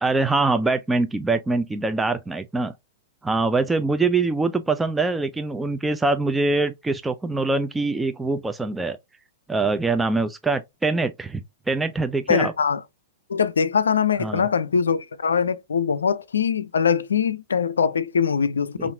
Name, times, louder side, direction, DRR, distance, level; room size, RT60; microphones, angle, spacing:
voice 1, 0.0-2.7 3.2-9.0 9.5-12.5 14.2-14.4, right 3 dB, 10° right, 0.4 m, -23 dB
voice 2, 12.3-12.8 13.3-18.9, left 6 dB, 80° left, 0.4 m, -22 dB
5.5 x 2.5 x 2.7 m
hypercardioid pair, 110°, 0 cm